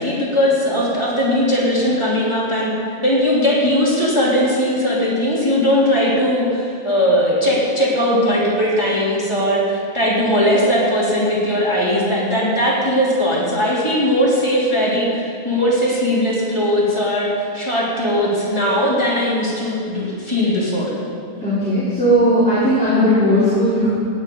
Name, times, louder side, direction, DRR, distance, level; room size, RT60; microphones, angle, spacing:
voice 1, 0.0-2.7 3.0-20.9, equal, 20° left, -6 dB, 3.1 m, -19 dB
voice 2, 21.4-23.9, equal, 5° left, -12 dB, 3.5 m, -16 dB
17.0 x 10.0 x 5.4 m, 2.5 s
omnidirectional pair, 1.3 m